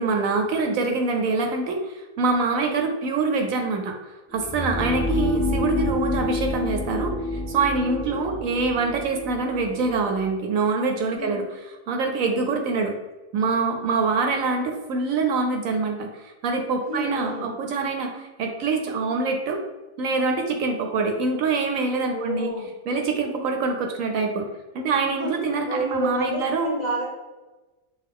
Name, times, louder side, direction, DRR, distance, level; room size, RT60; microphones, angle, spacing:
voice 1, 0.0-13.0 13.3-19.6 20.0-22.5 22.9-24.4 24.7-26.7, right 4 dB, 70° right, 3 dB, 0.9 m, -25 dB
sound 1, 4.3-10.2, left 2 dB, 10° left, 0.5 m, -28 dB
voice 2, 4.7-5.3 7.7-8.3 11.1-11.5 13.9-14.5 16.8-17.5 22.1-22.7 25.2-25.3 25.7-27.0, right 1 dB, 30° left, -5 dB, 1.1 m, -31 dB
6.3 x 2.3 x 3.5 m, 1.2 s
omnidirectional pair, 1.5 m